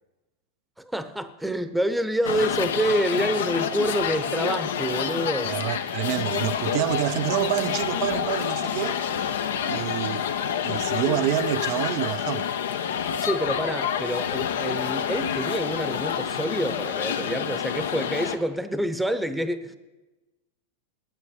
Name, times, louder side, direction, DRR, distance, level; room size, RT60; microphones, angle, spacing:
voice 1, 0.8-5.6 13.2-19.8, right 1 dB, 5° right, 0.8 m, -27 dB
sound 1, 2.2-18.4, left 8 dB, 85° left, 0.9 m, -28 dB
voice 2, 5.4-9.0 9.7-10.2 10.6-12.5, right 14 dB, 55° right, 0.5 m, -27 dB
9.2 x 8.8 x 9.6 m
hypercardioid pair, 120°, 0 cm